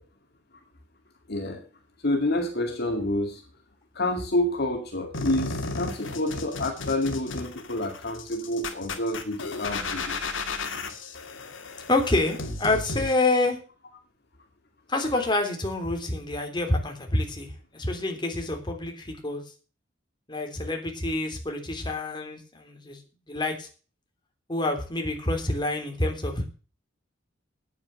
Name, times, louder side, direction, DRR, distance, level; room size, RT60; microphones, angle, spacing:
voice 1, 1.3-1.6 2.0-3.4 3.9-10.2, left 1 dB, 55° left, 3 dB, 2.2 m, -28 dB
sound 1, 5.1-13.1, left 3 dB, 75° left, 2.3 m, -34 dB
voice 2, 11.9-13.6 14.9-19.4 20.3-23.0 23.3-23.7 24.5-26.5, left 2 dB, 25° left, 3 dB, 3.4 m, -27 dB
9.9 x 9.3 x 7.6 m, 0.36 s
head